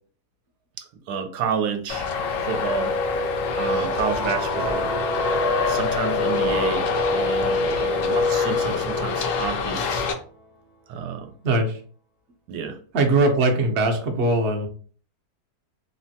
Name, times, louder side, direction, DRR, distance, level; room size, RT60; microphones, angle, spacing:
voice 1, 0.8-2.1 2.5-2.9 3.6-4.9 5.7-9.8 10.9-11.3 12.5-12.8, right 6 dB, 85° right, 6 dB, 1.2 m, -30 dB
Traffic noise roadway noise, 1.9-10.1, left 3 dB, 70° left, 0.8 m, -24 dB
sound 1, 4.0-10.5, left 4 dB, 90° left, 1.5 m, -32 dB
voice 2, 11.4-11.8 12.9-14.7, right 2 dB, 60° right, 3 dB, 0.8 m, -20 dB
3.3 x 2.1 x 2.7 m, 0.43 s
omnidirectional pair, 1.7 m